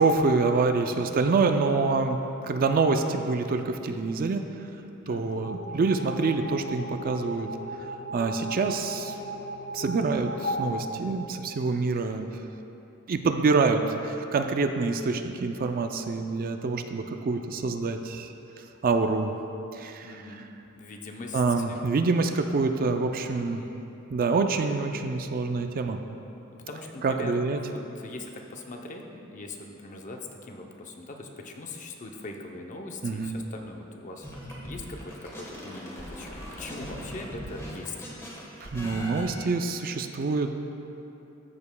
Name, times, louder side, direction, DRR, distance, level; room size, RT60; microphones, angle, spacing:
voice 1, 0.0-2.2 2.4-4.5 5.1-7.5 8.1-9.1 9.7-12.3 13.1-18.3 18.8-19.3 19.7-20.5 21.3-23.6 24.1-26.0 27.0-27.6 33.0-33.4 38.6-40.5, right 4 dB, 45° right, 6 dB, 0.4 m, -26 dB
voice 2, 0.8-1.9 5.0-5.5 20.0-20.4 20.8-21.8 23.3-23.8 26.5-34.4 34.6-38.0, left 2 dB, 35° left, 2 dB, 0.6 m, -41 dB
sound 1, 5.3-11.8, equal, 75° left, 0.9 m, -36 dB
sound 2, 34.2-39.2, equal, 15° left, 1.2 m, -40 dB
13.5 x 6.8 x 2.2 m, 2.9 s
head